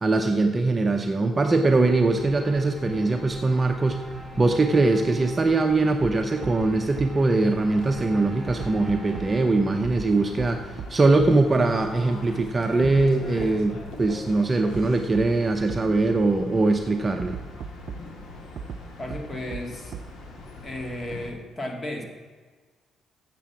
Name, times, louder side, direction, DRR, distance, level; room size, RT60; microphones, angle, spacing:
voice 1, 0.0-4.1 4.4-17.4, right 3 dB, 25° right, 5 dB, 0.7 m, -22 dB
sound 1, 1.4-9.9, right 1 dB, 5° right, 1.9 m, -46 dB
sound 2, 1.7-21.3, left 2 dB, 65° left, 1.8 m, -42 dB
sound 3, 6.0-6.1 6.4-6.5 7.0-7.1 8.5-9.2 9.8-10.1 10.4-10.5 10.8-10.9 11.2-11.3 12.8-13.1 13.4-13.5 14.7-14.8 15.1-15.2 15.7-15.8 17.2-18.0 18.6-18.8 19.1-19.2 19.5-19.6 19.9-20.0, right 7 dB, 65° right, 0.4 m, -35 dB
voice 2, 19.0-19.9 20.6-22.0, left 1 dB, 30° left, 3 dB, 2.0 m, -34 dB
7.5 x 7.3 x 7.1 m, 1.5 s
cardioid pair, 90°, 0 cm